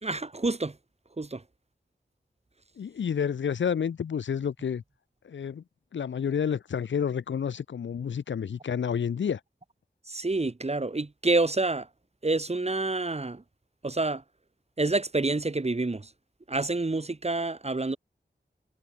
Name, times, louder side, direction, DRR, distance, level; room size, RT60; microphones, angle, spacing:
voice 1, 0.0-0.7 1.2-1.4 10.1-11.9 12.2-13.4 13.8-14.2 14.8-16.1 16.5-18.0, right 2 dB, 35° right, 1.0 m, -28 dB
voice 2, 2.8-4.8 5.2-5.6 5.9-9.4, left 7 dB, 85° left, 0.4 m, -29 dB
wide cardioid pair, 50°, 19 cm